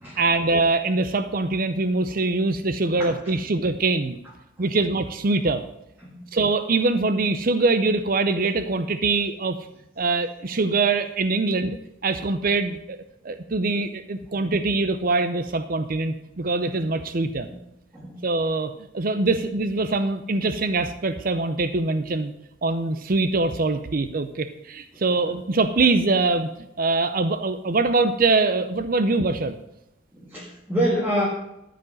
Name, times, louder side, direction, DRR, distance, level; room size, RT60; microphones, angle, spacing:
voice 1, 0.2-4.2 4.6-5.6 6.3-9.7 10.0-11.8 12.0-13.0 13.2-17.5 18.2-22.3 22.6-26.5 26.8-29.6, right 3 dB, 45° right, 10 dB, 0.6 m, -23 dB
voice 2, 14.3-14.7 16.7-16.9 17.4-17.6 17.9-18.2 24.9-25.0 30.1-31.3, equal, 10° right, -4 dB, 1.9 m, -28 dB
13.5 x 5.1 x 7.8 m, 0.86 s
head